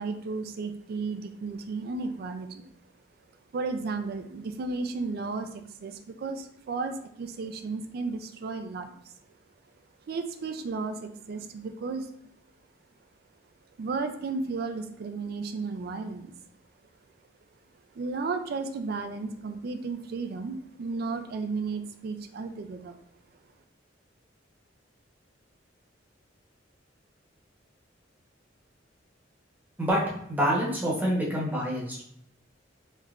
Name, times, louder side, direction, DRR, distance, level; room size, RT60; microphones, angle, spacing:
voice 1, 0.0-2.7 3.5-5.5 5.8-8.9 10.1-12.1 13.8-16.3 18.0-22.9, right 4 dB, 50° right, 8 dB, 0.3 m, -33 dB
voice 2, 30.3-32.0, equal, 10° right, -6 dB, 0.9 m, -26 dB
3.3 x 2.9 x 2.4 m, 0.70 s
head